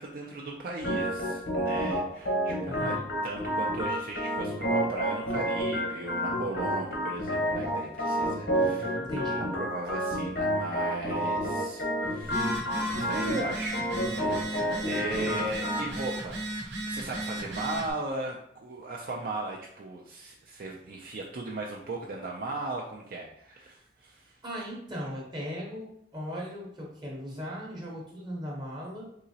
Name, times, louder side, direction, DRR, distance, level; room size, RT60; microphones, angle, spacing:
voice 1, 0.0-3.0 3.2-9.0 9.4-24.4, right 2 dB, 50° right, -1 dB, 0.4 m, -37 dB
Organ, 0.8-15.9, equal, 70° left, 0.9 m, -30 dB
voice 2, 2.7-3.0 8.5-9.4 15.2-15.4 24.4-29.0, equal, 25° right, -3 dB, 0.8 m, -38 dB
Telephone, 12.2-17.9, right 2 dB, 80° right, 0.8 m, -35 dB
3.7 x 2.9 x 2.8 m, 0.72 s
head